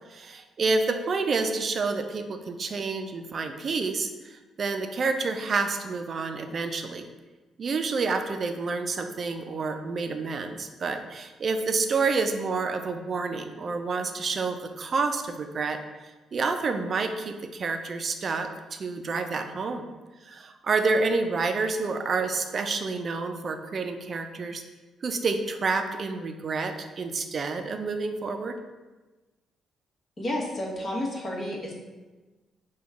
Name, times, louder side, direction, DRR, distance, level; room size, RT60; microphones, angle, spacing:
voice 1, 0.1-7.1 7.6-15.8 16.3-19.8 20.3-24.6 25.0-28.6, right 4 dB, 45° right, 7 dB, 0.4 m, -29 dB
voice 2, 30.2-31.7, left 1 dB, 35° left, -3 dB, 1.1 m, -31 dB
5.1 x 2.3 x 3.5 m, 1.2 s
cardioid pair, 90°, 0 cm